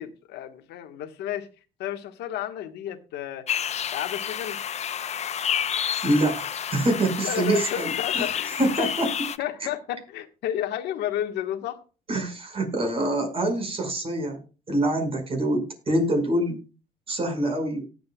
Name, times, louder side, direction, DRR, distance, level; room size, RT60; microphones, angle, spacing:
voice 1, 0.0-1.5 1.8-3.4 3.9-4.6 7.1-8.9 9.4-11.8 12.1-12.2, left 11 dB, 80° left, 1.6 m, -32 dB
sound 1, 3.5-9.4, left 9 dB, 40° left, 0.8 m, -29 dB
voice 2, 6.0-8.2 8.6-9.1 12.1-14.4 14.7-16.6 17.1-17.9, right 1 dB, 35° right, 5.6 m, -25 dB
18.5 x 8.1 x 2.4 m
cardioid pair, 110°, 17 cm